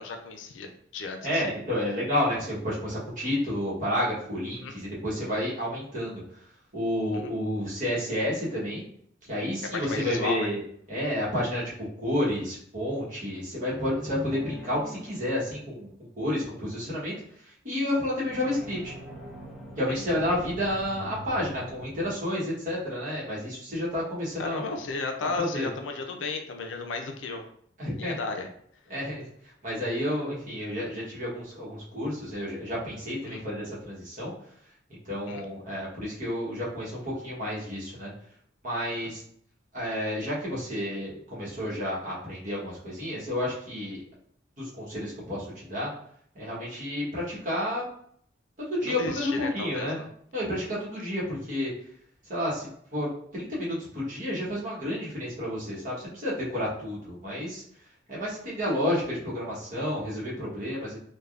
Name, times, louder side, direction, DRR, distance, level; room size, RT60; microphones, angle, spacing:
voice 1, 0.0-1.5 4.6-4.7 7.1-7.3 9.7-10.5 24.4-27.4 27.9-28.5 33.2-33.4 35.2-35.4 38.9-39.1 48.8-50.1, left 3 dB, 85° left, 4 dB, 0.4 m, -34 dB
voice 2, 1.2-6.2 6.7-8.8 9.3-10.6 10.9-15.9 16.2-17.1 17.6-18.9 19.8-24.6 25.4-25.7 27.8-28.1 28.9-29.2 29.6-34.3 35.0-38.1 38.6-39.2 39.7-44.0 44.6-45.9 46.3-47.9 48.7-50.0 50.3-51.7 52.3-53.1 53.3-57.6 58.1-61.0, left 1 dB, 45° right, -6 dB, 1.1 m, -30 dB
sound 1, 13.7-15.9 18.2-23.2, right 1 dB, ahead, 0.7 m, -43 dB
3.3 x 2.2 x 2.4 m, 0.64 s
head